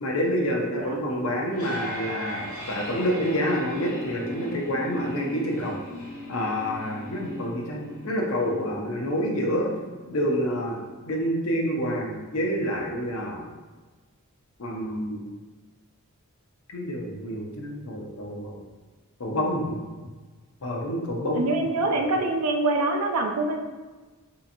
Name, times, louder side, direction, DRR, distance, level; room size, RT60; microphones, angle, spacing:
voice 1, 0.0-5.8 6.3-9.7 10.1-13.4 14.6-15.2 16.7-18.6 19.2-19.8 20.6-21.4, equal, 65° left, -1 dB, 0.6 m, -28 dB
sound 1, 1.2-12.2, equal, 80° left, 1.5 m, -39 dB
voice 2, 21.4-23.6, right 2 dB, 85° right, 3 dB, 0.5 m, -25 dB
3.7 x 2.8 x 2.5 m, 1.3 s
head